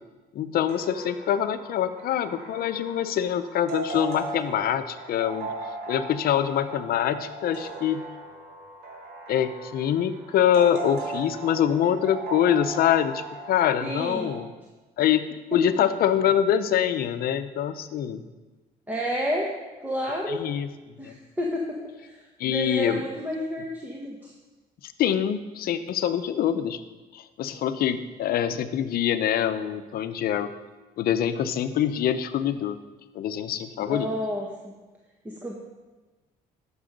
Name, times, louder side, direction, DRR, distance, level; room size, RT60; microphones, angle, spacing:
voice 1, 0.3-5.5 5.9-8.0 9.3-14.5 15.0-18.2 20.3-20.7 21.0-21.1 22.4-23.0 24.8-26.8 27.1-30.5 31.0-32.8 33.1-34.1, left 9 dB, 65° left, 11 dB, 0.7 m, -25 dB
sound 1, 0.7-14.4, right 3 dB, 75° right, 2.6 m, -38 dB
voice 2, 13.8-14.3 18.9-19.5 19.8-20.4 21.0-24.3 33.8-34.7 35.2-35.5, equal, 10° right, -2 dB, 1.4 m, -31 dB
11.5 x 7.1 x 5.2 m, 1.2 s
cardioid pair, 110°, 17 cm